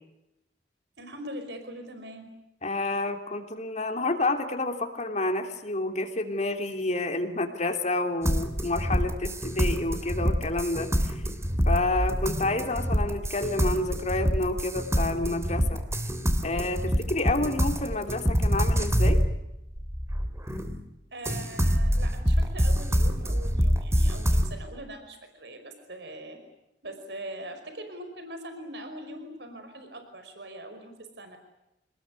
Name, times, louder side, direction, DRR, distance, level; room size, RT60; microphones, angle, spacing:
voice 1, 1.0-2.3 16.9-17.0 21.1-26.4 26.8-31.4, right 1 dB, 70° right, 7 dB, 5.2 m, -42 dB
voice 2, 2.6-11.2 11.7-15.8 16.4-19.2, left 2 dB, 40° left, 5 dB, 3.0 m, -29 dB
sound 1, 8.2-20.8 21.3-24.5, equal, 15° right, 2.9 m, -26 dB
27.5 x 20.5 x 9.7 m, 0.87 s
head